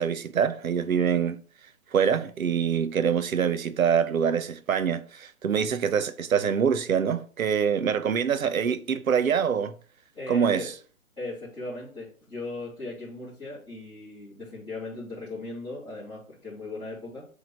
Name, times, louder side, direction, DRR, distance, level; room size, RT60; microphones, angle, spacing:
voice 1, 0.0-1.4 1.9-9.7 10.3-10.7, right 7 dB, 70° right, 1.0 m, -25 dB
voice 2, 10.1-10.7 11.2-17.3, left 2 dB, 10° left, 3.3 m, -38 dB
8.1 x 3.7 x 4.7 m
hypercardioid pair, 150°, 43 cm